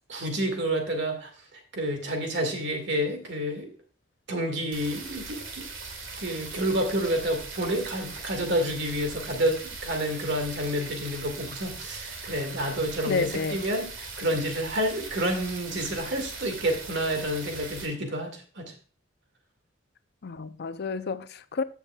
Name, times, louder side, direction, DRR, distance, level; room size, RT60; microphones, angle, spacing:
voice 1, 0.1-1.3 1.7-3.7 4.3-5.7 6.2-13.9 14.2-18.7, equal, 65° right, 2.1 m, -29 dB
sound 1, 4.7-17.9, right 4 dB, 90° right, 2.2 m, -40 dB
voice 2, 13.1-13.6 20.2-21.6, left 4 dB, 55° left, 0.5 m, -30 dB
14.5 x 7.0 x 2.3 m
head